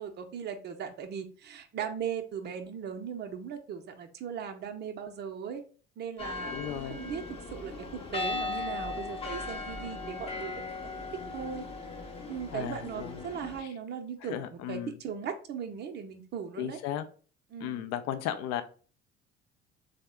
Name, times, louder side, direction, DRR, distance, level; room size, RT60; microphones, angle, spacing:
voice 1, 0.0-5.6 6.0-10.9 11.3-11.6 12.3-16.8 17.5-17.9, right 7 dB, 30° right, 6 dB, 0.6 m, -38 dB
sound 1, 6.2-13.6, left 3 dB, 15° left, 0.7 m, -38 dB
voice 2, 6.5-7.0 12.5-13.2 14.2-15.0 16.6-17.0 17.6-18.6, left 11 dB, 50° left, 10 dB, 0.5 m, -35 dB
3.5 x 2.1 x 3.4 m, 0.39 s
figure-of-eight pair, 60°, 34 cm